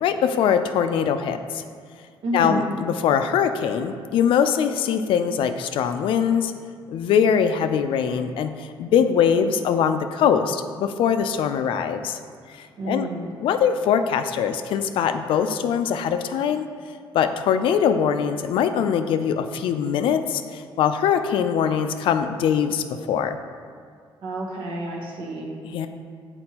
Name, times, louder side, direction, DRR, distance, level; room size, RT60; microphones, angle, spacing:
voice 1, 0.0-1.6 2.3-6.5 6.9-12.2 12.5-13.1 13.4-16.7 17.1-23.4 25.6-25.9, left 7 dB, 75° left, 9 dB, 0.4 m, -22 dB
voice 2, 2.2-2.6 12.8-13.6 24.2-25.5, right 1 dB, 75° right, -2 dB, 1.1 m, -29 dB
7.7 x 4.3 x 2.9 m, 2.1 s
cardioid pair, 145°, 9 cm